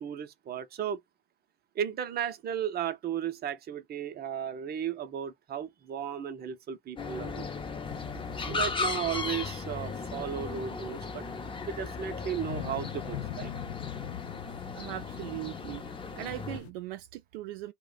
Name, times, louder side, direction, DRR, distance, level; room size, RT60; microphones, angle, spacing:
voice 1, 0.0-1.0 1.7-7.4 8.4-11.2 11.6-13.5, right 9 dB, 30° right, 0.6 m, -35 dB
sound 1, 7.0-16.6, left 4 dB, 15° left, 0.7 m, -36 dB
sound 2, 7.9-16.7, left 12 dB, 85° left, 0.5 m, -44 dB
voice 2, 14.7-15.8 16.2-17.7, right 15 dB, 65° right, 0.4 m, -39 dB
2.4 x 2.2 x 3.8 m
hypercardioid pair, 80°, 31 cm